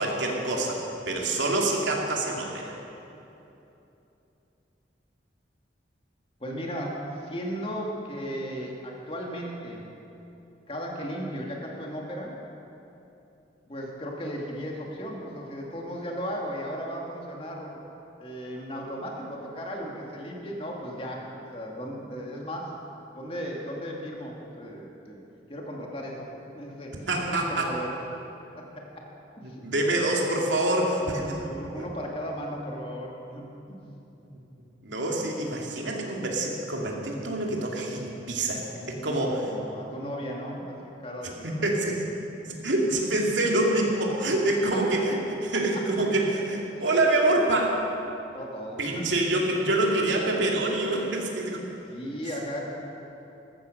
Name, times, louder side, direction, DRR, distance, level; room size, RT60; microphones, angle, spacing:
voice 1, 0.0-2.7 27.1-27.7 29.4-31.4 31.7-31.8 33.8-33.9 34.2-34.4 34.8-39.3 41.4-42.0 42.6-47.8 48.8-51.6, right 2 dB, 85° right, -1 dB, 2.6 m, -26 dB
voice 2, 6.4-9.9 10.7-12.4 13.7-17.8 18.2-22.8 23.1-25.2 25.5-26.3 26.5-28.0 28.5-29.1 29.4-29.6 31.0-33.8 39.0-41.7 42.4-42.6 44.3-44.8 45.5-45.6 46.7-46.8 48.3-49.1 51.9-52.6, equal, 30° left, -1 dB, 2.3 m, -36 dB
15.0 x 14.0 x 6.6 m, 2.9 s
head